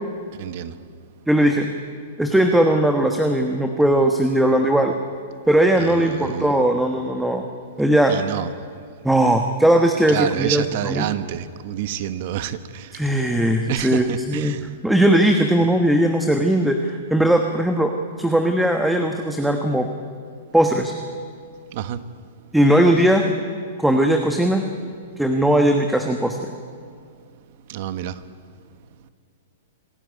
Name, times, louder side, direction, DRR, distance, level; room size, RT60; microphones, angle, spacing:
voice 1, 0.4-0.7 5.8-6.5 8.1-8.5 10.1-12.9 13.7-14.6 21.7-22.0 27.7-28.1, right 11 dB, 55° right, 13 dB, 1.2 m, -28 dB
voice 2, 1.3-1.7 2.2-4.9 5.5-7.5 7.8-8.1 9.0-11.1 12.9-14.5 14.8-17.9 18.2-19.9 20.5-20.9 22.5-23.2 23.8-24.6 25.2-26.5, right 1 dB, 5° right, 4 dB, 1.2 m, -18 dB
26.0 x 13.5 x 9.4 m, 2.2 s
hypercardioid pair, 140°, 0 cm